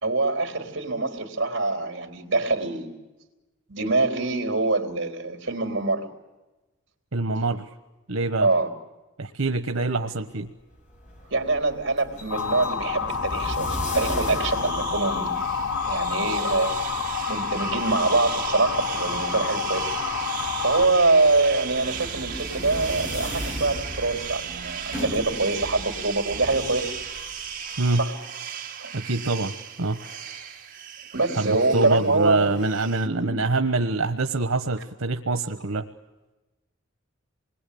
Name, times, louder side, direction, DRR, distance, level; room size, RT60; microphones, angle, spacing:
voice 1, 0.0-3.0 3.7-6.1 8.4-8.7 11.3-16.8 17.3-19.9 20.6-26.9 27.9-28.2 28.8-28.9 31.1-32.5 33.0-33.3, right 3 dB, 60° right, 5 dB, 3.8 m, -24 dB
voice 2, 7.1-7.7 8.1-8.5 9.2-10.5 27.8-28.0 28.9-29.5 29.8-30.0 31.4-35.9, right 3 dB, 90° right, 7 dB, 1.2 m, -25 dB
sound 1, 10.7-27.8, equal, 40° left, 6.5 m, -38 dB
Motor vehicle (road) / Siren, 12.3-20.8, left 6 dB, 85° left, 0.9 m, -28 dB
sound 2, 14.1-33.1, right 8 dB, 45° right, 2.3 m, -36 dB
28.0 x 21.5 x 8.6 m, 1.1 s
head